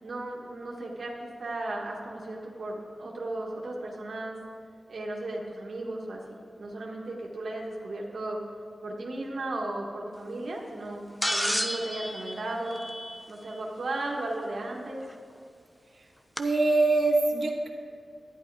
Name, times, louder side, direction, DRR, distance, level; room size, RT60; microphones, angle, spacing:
voice 1, 0.0-4.4 4.9-8.4 8.8-12.8 13.3-15.0, right 2 dB, 70° right, -2 dB, 1.4 m, -35 dB
sound 1, 11.2-13.5 15.1-15.2 16.4-16.5, equal, 5° left, 0.8 m, -31 dB
voice 2, 16.4-17.7, right 3 dB, 55° right, -1 dB, 1.4 m, -23 dB
11.5 x 10.5 x 4.7 m, 2.3 s
cardioid pair, 65°, 0 cm